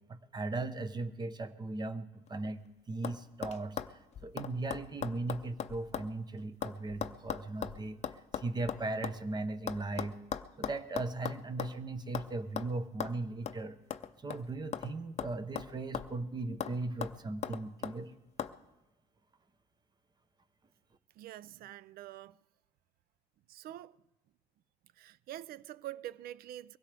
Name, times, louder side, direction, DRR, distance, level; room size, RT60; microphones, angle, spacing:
voice 1, 0.0-3.8 4.2-8.0 8.3-10.2 10.6-13.8 14.2-18.1, right 2 dB, 25° right, 0.8 m, -38 dB
sound 1, 2.3-2.7 3.0-3.2 3.4-6.1 6.4-9.2 9.7-11.8 12.1-12.3 12.6-12.7 13.0-13.1 13.5-13.6 13.9-14.9 15.2-16.2 16.6-16.7 17.0-18.0 18.4-18.5, left 9 dB, 40° left, 0.6 m, -39 dB
voice 2, 21.2-22.4 23.5-24.0 25.0-26.8, right 13 dB, 65° right, 0.4 m, -45 dB
23.0 x 16.5 x 3.4 m
cardioid pair, 110°, 17 cm